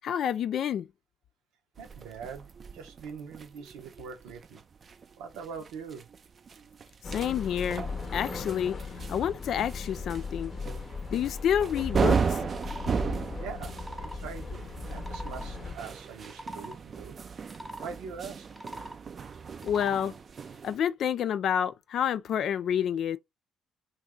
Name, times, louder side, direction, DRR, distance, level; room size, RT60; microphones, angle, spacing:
voice 1, 0.0-0.9 7.1-7.9 8.1-8.8 9.1-10.5 11.1-12.4 19.6-20.1 20.6-23.2, left 9 dB, 60° left, 0.3 m, -28 dB
sound 1, 1.8-20.8, right 5 dB, 45° right, 0.4 m, -36 dB
voice 2, 1.8-4.6 5.2-6.1 13.4-17.2 17.8-18.5, right 6 dB, 75° right, 0.7 m, -43 dB
sound 2, 7.0-15.7, left 4 dB, 40° left, 0.7 m, -38 dB
sound 3, 12.5-12.9 13.5-14.2 14.9-15.5 16.1-16.8 17.4-17.9 18.4-19.0 19.6-20.1, equal, 5° right, 0.8 m, -42 dB
2.7 x 2.3 x 3.5 m
hypercardioid pair, 50°, 0 cm